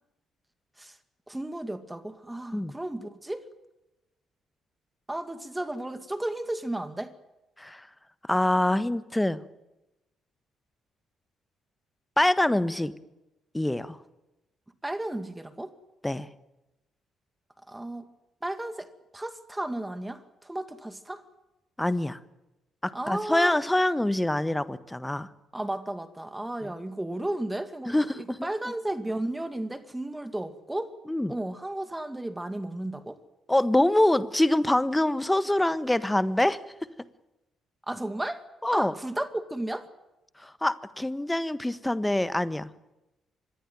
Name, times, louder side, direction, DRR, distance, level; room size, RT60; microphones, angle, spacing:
voice 1, 1.3-3.5 5.1-7.1 14.8-15.7 17.7-18.1 18.4-21.2 22.9-23.5 25.5-30.9 31.3-33.2 37.9-38.4 38.7-39.9, right 1 dB, 10° right, 10 dB, 2.3 m, -34 dB
voice 2, 8.3-9.4 12.2-12.9 13.5-14.0 16.0-16.3 21.8-22.2 22.8-25.3 26.6-26.7 27.9-28.2 31.1-31.3 33.5-36.6 38.6-38.9 40.4-42.7, left 1 dB, 10° left, 15 dB, 1.4 m, -25 dB
25.5 x 20.5 x 9.3 m, 0.97 s
figure-of-eight pair, 45°, 0 cm